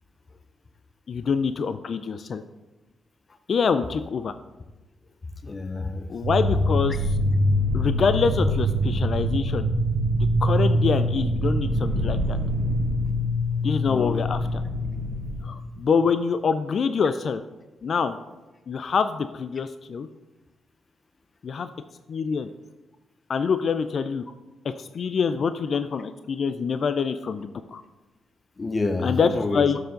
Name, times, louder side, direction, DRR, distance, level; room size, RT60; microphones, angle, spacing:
voice 1, 1.1-2.4 3.5-4.3 6.1-7.2 7.7-9.7 10.4-12.4 13.6-14.6 15.4-17.4 17.8-18.2 18.7-20.1 21.4-21.7 22.1-22.5 23.3-24.2 24.6-27.8 29.0-29.8, left 5 dB, 60° left, 11 dB, 0.4 m, -25 dB
voice 2, 5.4-6.1 13.9-14.3 28.6-29.7, left 3 dB, 35° left, 8 dB, 0.8 m, -28 dB
sound 1, 6.2-15.6, equal, 70° right, 1.3 m, -24 dB
12.5 x 4.8 x 3.8 m, 1.1 s
supercardioid pair, 50°, 0 cm